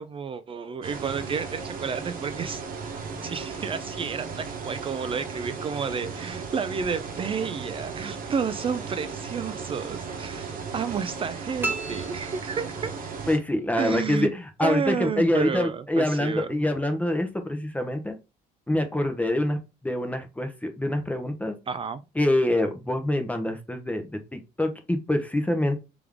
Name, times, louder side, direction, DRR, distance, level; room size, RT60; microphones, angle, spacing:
voice 1, 0.0-2.6 3.2-12.9 13.7-14.3 14.6-16.6 21.7-22.0, right 6 dB, 30° right, 0.4 m, -31 dB
sound 1, 0.8-13.4, right 5 dB, 60° right, 1.0 m, -36 dB
sound 2, 11.6-13.2, right 2 dB, 10° right, 1.0 m, -34 dB
voice 2, 13.3-18.2 18.7-19.6 19.8-21.6 22.2-25.8, left 1 dB, 10° left, 0.7 m, -25 dB
3.4 x 3.4 x 3.5 m
cardioid pair, 110°, 17 cm